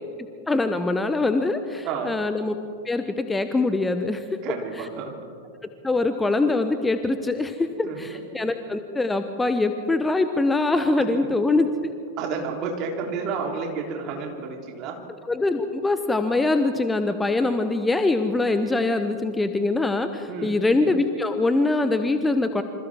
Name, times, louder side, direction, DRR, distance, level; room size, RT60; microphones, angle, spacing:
voice 1, 0.5-2.6 2.8-4.2 4.8-4.9 5.8-11.9 15.3-22.6, left 2 dB, 10° left, 9 dB, 0.9 m, -23 dB
voice 2, 1.8-2.2 4.4-5.1 7.8-8.2 11.2-11.5 12.2-15.0 20.3-20.6, right 5 dB, 40° right, 1 dB, 3.5 m, -31 dB
27.5 x 25.5 x 3.7 m, 2.5 s
figure-of-eight pair, 90°, 0 cm